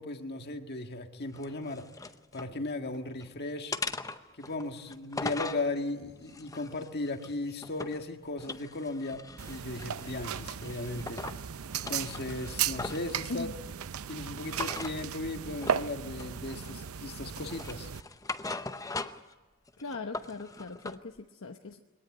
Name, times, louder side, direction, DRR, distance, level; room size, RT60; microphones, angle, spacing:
voice 1, 0.0-1.9 2.3-3.7 4.4-11.2 11.9-13.5 14.1-17.9, left 2 dB, 50° left, 5 dB, 1.7 m, -36 dB
sound 1, 1.3-2.5 2.9-3.3 3.7-5.7 6.2-8.0 8.4-10.2 10.6-11.4 11.7-13.1 14.5-15.0 15.6-15.9 16.2-16.9 17.3-19.3 19.7-21.0, left 3 dB, 15° left, 0.7 m, -40 dB
sound 2, 9.4-18.0, right 8 dB, 85° right, 0.6 m, -36 dB
voice 2, 19.8-21.8, left 3 dB, 65° left, 4 dB, 1.0 m, -40 dB
22.5 x 18.0 x 9.6 m, 1.3 s
head